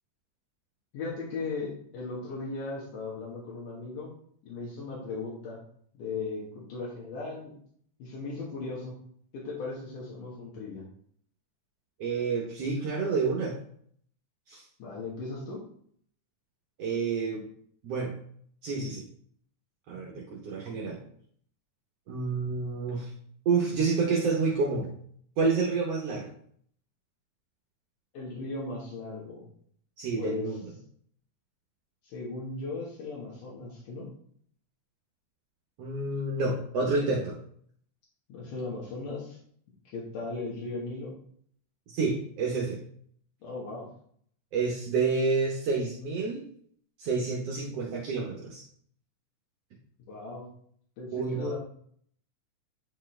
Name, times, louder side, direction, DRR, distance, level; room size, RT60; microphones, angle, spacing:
voice 1, 0.9-4.1 4.4-5.6 5.9-7.5 8.0-8.9 9.3-10.8 14.8-15.6 28.1-29.4 30.2-30.6 32.0-34.1 38.3-39.4 39.8-41.1 43.4-43.9 50.1-50.5 51.0-51.6, left 3 dB, 80° left, -5 dB, 2.9 m, -37 dB
voice 2, 12.0-13.6 14.5-14.6 16.8-17.4 17.8-18.1 18.6-19.0 19.9-21.0 22.1-23.1 23.4-24.9 25.4-26.3 30.0-30.6 35.8-37.3 41.9-42.8 44.5-46.4 47.0-48.6 51.1-51.5, right 4 dB, 65° right, -2 dB, 1.7 m, -29 dB
8.9 x 4.5 x 3.2 m, 0.62 s
omnidirectional pair, 3.7 m